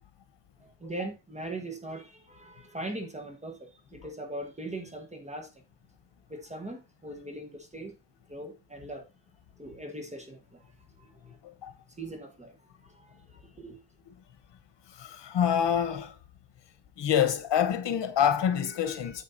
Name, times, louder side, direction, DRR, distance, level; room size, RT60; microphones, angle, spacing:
voice 1, 0.6-5.5 6.3-7.9 8.3-9.0 9.6-10.6 11.0-11.4 12.0-13.8, right 2 dB, 15° right, 1.4 m, -40 dB
voice 2, 11.4-11.7 15.0-16.2 17.0-19.2, left 9 dB, 85° left, 1.3 m, -26 dB
9.5 x 7.2 x 2.7 m
wide cardioid pair, 145°, 42 cm